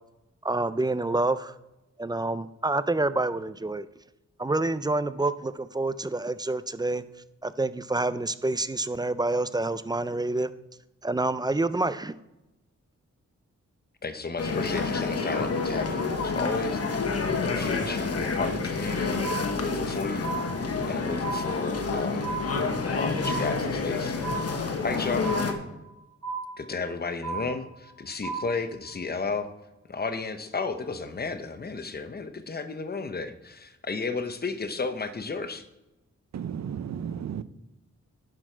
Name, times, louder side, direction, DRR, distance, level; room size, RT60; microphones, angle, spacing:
voice 1, 0.4-1.5 2.0-3.9 4.4-7.0 7.4-10.5 11.0-12.1, right 2 dB, 15° right, 14 dB, 0.3 m, -27 dB
voice 2, 14.0-17.1 17.4-19.2 19.6-20.3 20.9-22.5 22.9-24.2 24.8-25.4 26.6-29.5 29.9-35.6, left 4 dB, 35° left, 10 dB, 0.8 m, -33 dB
sound 1, 14.4-25.5, left 4 dB, 55° left, 1.1 m, -29 dB
sound 2, 19.2-19.9 20.2-21.0 21.2-22.0 22.2-23.0 23.2-24.0 24.2-25.0 25.2-26.0 26.2-27.0 27.2-28.0 28.2-29.0, right 5 dB, 80° right, 3.6 m, -35 dB
voice 3, 36.3-37.4, right 8 dB, 65° right, 15 dB, 0.5 m, -33 dB
11.0 x 6.2 x 4.5 m, 0.97 s
wide cardioid pair, 130°, 29 cm